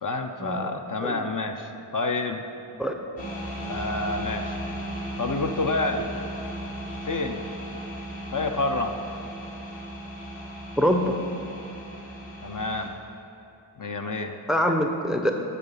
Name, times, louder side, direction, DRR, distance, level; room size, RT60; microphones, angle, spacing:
voice 1, 0.0-2.4 3.7-4.6 5.2-6.1 7.0-7.5 8.3-9.0 12.4-12.9 13.8-14.4, left 2 dB, 40° left, 5 dB, 0.6 m, -28 dB
sound 1, 3.2-12.9, right 1 dB, 65° left, 2.0 m, -36 dB
voice 2, 10.8-11.2 14.5-15.3, equal, ahead, 4 dB, 0.5 m, -24 dB
10.5 x 4.1 x 5.5 m, 2.8 s
cardioid pair, 45°, 49 cm